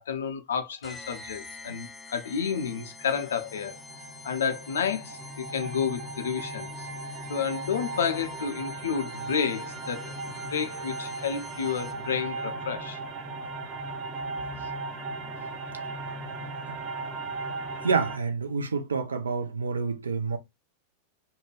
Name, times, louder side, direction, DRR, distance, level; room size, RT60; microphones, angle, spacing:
voice 1, 0.0-3.8 4.2-6.9 7.3-13.0, left 6 dB, 65° left, 0.6 m, -31 dB
sound 1, 0.8-12.2, left 4 dB, 10° left, 0.5 m, -47 dB
sound 2, 2.8-18.2, right 3 dB, 30° right, 0.6 m, -37 dB
voice 2, 17.8-20.4, right 5 dB, 75° right, 0.4 m, -28 dB
2.6 x 2.2 x 3.1 m
figure-of-eight pair, 90°, 0 cm